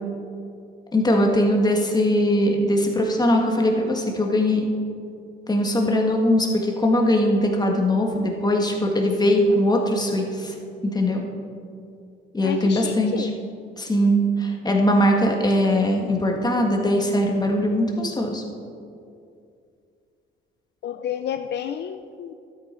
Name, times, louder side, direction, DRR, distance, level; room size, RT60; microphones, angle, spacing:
voice 1, 0.9-4.7 5.5-10.5 10.9-11.2 12.3-13.3 13.8-18.4, equal, 20° left, 1 dB, 1.7 m, -21 dB
voice 2, 12.4-13.3 20.8-22.3, left 9 dB, 60° left, 8 dB, 0.5 m, -30 dB
12.5 x 8.4 x 4.4 m, 2.4 s
cardioid pair, 90°, 20 cm